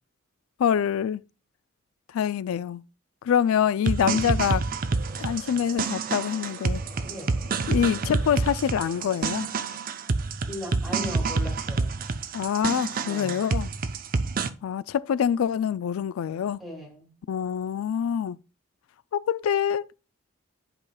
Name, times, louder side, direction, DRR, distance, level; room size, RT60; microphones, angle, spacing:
voice 1, 0.6-1.2 2.1-2.8 3.2-4.6 5.2-6.8 7.7-9.5 12.3-13.7 14.6-16.6 17.3-18.4 19.1-19.9, left 8 dB, 75° left, 0.3 m, -25 dB
sound 1, 3.9-14.5, right 4 dB, 40° right, 0.5 m, -28 dB
sound 2, 4.5-9.8, equal, 65° right, 2.0 m, -48 dB
voice 2, 7.0-7.3 10.4-12.0 13.0-13.4 16.6-17.1, equal, ahead, 2.1 m, -38 dB
11.0 x 4.8 x 2.2 m
head